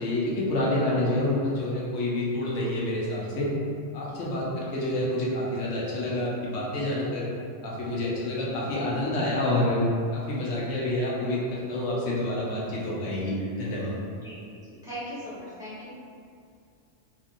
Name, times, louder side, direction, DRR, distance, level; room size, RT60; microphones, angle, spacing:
voice 1, 0.0-3.5 3.9-7.3 7.6-9.8 10.1-14.0, left 1 dB, 80° left, -5 dB, 1.0 m, -28 dB
voice 2, 14.7-16.0, equal, 5° right, -13 dB, 0.8 m, -40 dB
2.7 x 2.7 x 2.5 m, 2.4 s
omnidirectional pair, 1.3 m